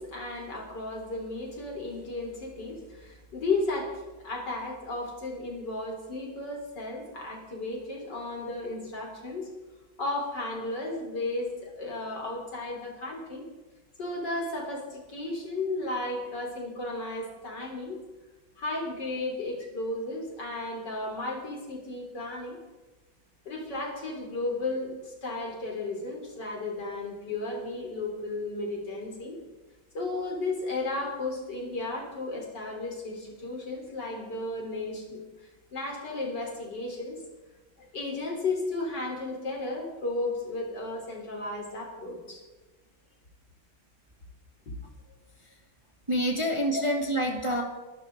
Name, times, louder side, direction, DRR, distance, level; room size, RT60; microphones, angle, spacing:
voice 1, 0.0-9.5 10.0-13.4 14.0-18.0 18.6-22.6 23.5-29.4 29.9-35.2 35.7-37.2 37.9-42.4 46.7-46.8 47.4-47.6, left 2 dB, 60° left, -1 dB, 4.5 m, -34 dB
voice 2, 46.1-47.6, equal, 15° right, 1 dB, 1.8 m, -27 dB
23.0 x 12.5 x 3.9 m, 1.2 s
omnidirectional pair, 2.1 m